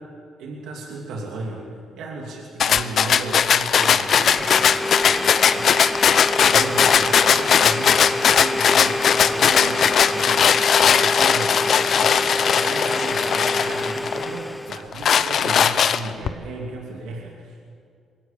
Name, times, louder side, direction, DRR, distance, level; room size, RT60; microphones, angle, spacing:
voice 1, 0.4-1.7 1.9-5.9 6.2-17.7, right 2 dB, 85° right, -1 dB, 2.8 m, -35 dB
sound 1, 2.6-14.3 14.7-16.3, left 7 dB, 60° left, 0.8 m, -18 dB
Domestic sounds home sounds, 3.8-14.9, left 1 dB, 10° left, 0.7 m, -27 dB
22.5 x 17.5 x 7.0 m, 2.3 s
cardioid pair, 90°, 0 cm